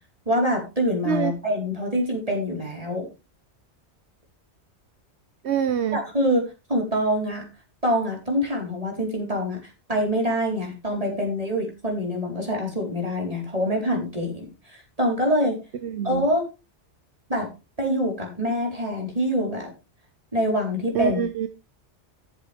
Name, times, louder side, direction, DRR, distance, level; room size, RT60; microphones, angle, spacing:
voice 1, 0.3-3.1 5.9-7.5 7.8-9.6 9.9-14.5 14.7-15.6 16.0-16.5 17.3-17.5 17.8-19.7 20.3-21.2, equal, 30° right, -1 dB, 4.5 m, -25 dB
voice 2, 5.4-6.0 15.8-16.3 20.9-21.5, right 8 dB, 70° right, 10 dB, 1.1 m, -25 dB
14.0 x 8.6 x 3.5 m, 0.28 s
omnidirectional pair, 1.2 m